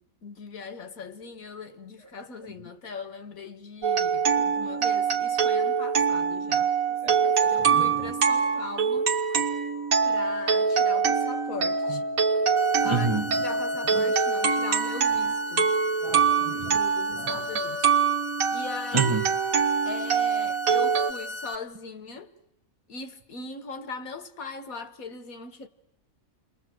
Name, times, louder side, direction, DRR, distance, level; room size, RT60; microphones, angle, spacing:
voice 1, 0.0-6.7 7.5-9.2 10.0-12.0 12.8-13.1 13.4-15.7 16.7-17.9 18.5-19.1 19.9-22.3 22.9-25.7, left 4 dB, 75° left, 1.9 m, -40 dB
sound 1, 3.8-21.1, right 6 dB, 75° right, 1.8 m, -24 dB
voice 2, 4.4-4.8 7.0-8.0 11.8-12.0 12.8-13.4 13.9-14.0 16.0-16.8 17.2-17.4 18.9-19.2, right 4 dB, 25° right, 0.9 m, -31 dB
sound 2, 12.6-21.6, left 2 dB, 10° left, 1.1 m, -37 dB
30.0 x 21.5 x 7.8 m
omnidirectional pair, 1.5 m